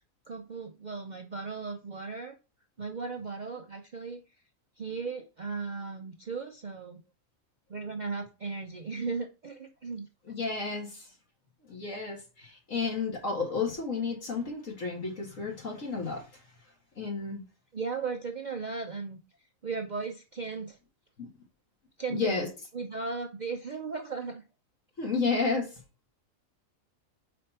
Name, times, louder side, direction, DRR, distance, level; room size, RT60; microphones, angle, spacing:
voice 1, 0.3-2.3 2.8-4.2 4.8-7.0 7.7-10.1 17.7-19.2 19.6-20.8 22.0-22.4 22.7-24.4, right 4 dB, 50° right, 4 dB, 0.6 m, -36 dB
voice 2, 10.3-11.0 11.7-16.2 17.0-17.4 21.2-21.3 22.1-22.5 25.0-25.7, left 4 dB, 65° left, 0 dB, 2.2 m, -31 dB
5.0 x 4.3 x 5.5 m, 0.32 s
omnidirectional pair, 1.5 m